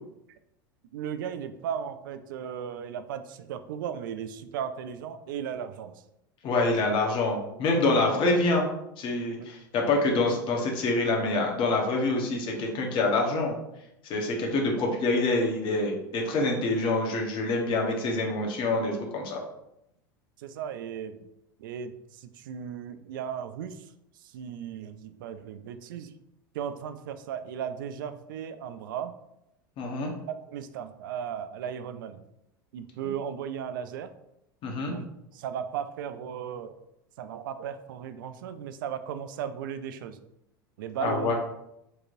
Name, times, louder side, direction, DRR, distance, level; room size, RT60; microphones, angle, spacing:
voice 1, 0.9-6.0 20.4-21.3 21.6-23.9 24.3-26.1 26.5-29.1 30.3-32.2 32.7-34.1 34.9-35.1 35.3-36.7 37.2-40.2 40.8-41.3, right 8 dB, 70° right, 10 dB, 0.4 m, -36 dB
voice 2, 6.4-8.7 9.0-13.6 14.1-19.4 29.8-30.1 34.6-34.9 41.0-41.3, left 2 dB, 45° left, 0 dB, 1.2 m, -26 dB
4.5 x 3.0 x 2.6 m, 0.83 s
hypercardioid pair, 85°, 11 cm